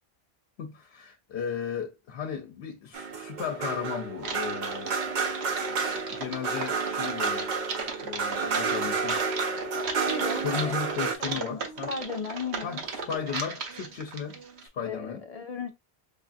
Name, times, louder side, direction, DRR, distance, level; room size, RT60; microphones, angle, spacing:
voice 1, 0.6-5.0 6.1-7.5 8.0-9.2 10.3-11.9 12.6-15.2, left 7 dB, 75° left, 0.8 m, -35 dB
sound 1, 2.9-11.2, right 4 dB, 55° right, 0.6 m, -30 dB
Typing, 4.2-14.7, right 4 dB, 85° right, 1.1 m, -37 dB
voice 2, 10.0-10.7 11.2-12.8 14.8-15.7, left 5 dB, 45° left, 0.5 m, -36 dB
4.9 x 2.4 x 2.4 m
omnidirectional pair, 1.1 m